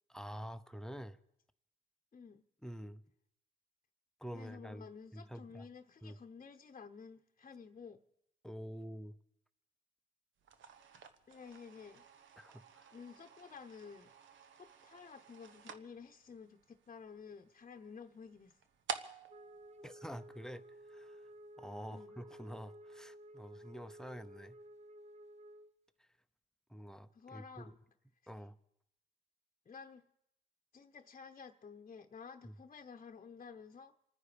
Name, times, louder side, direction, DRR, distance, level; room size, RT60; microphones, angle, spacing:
voice 1, 0.1-1.2 2.6-3.0 4.2-5.7 6.0-6.2 8.4-9.2 12.4-12.9 19.8-21.2 21.6-24.6 26.0-26.1 26.7-27.7 28.3-28.5 32.4-32.5, equal, 5° left, 0.7 m, -48 dB
voice 2, 2.1-2.4 4.3-8.0 11.3-12.0 12.9-14.1 14.6-18.6 21.9-22.2 27.1-27.7 29.7-30.0 30.7-33.9, left 6 dB, 35° left, 0.9 m, -52 dB
sound 1, 10.4-20.8, right 7 dB, 70° right, 1.1 m, -51 dB
Wind instrument woodwind instrument, 19.3-25.7, equal, 35° right, 0.9 m, -54 dB
28.0 x 9.7 x 5.1 m
cardioid pair, 90°, 20 cm